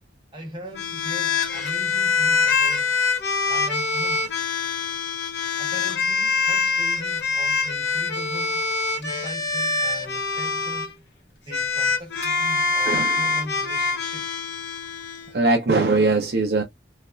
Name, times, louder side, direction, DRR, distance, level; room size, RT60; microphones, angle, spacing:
voice 1, 0.3-3.0 3.4-4.4 5.6-11.0 11.4-14.4, equal, 30° right, 1.3 m, -39 dB
sound 1, 0.7-10.9 11.5-15.3, left 4 dB, 80° left, 0.8 m, -24 dB
voice 2, 12.9-13.2 15.3-16.6, right 3 dB, 65° right, 0.6 m, -20 dB
3.3 x 2.4 x 2.2 m
head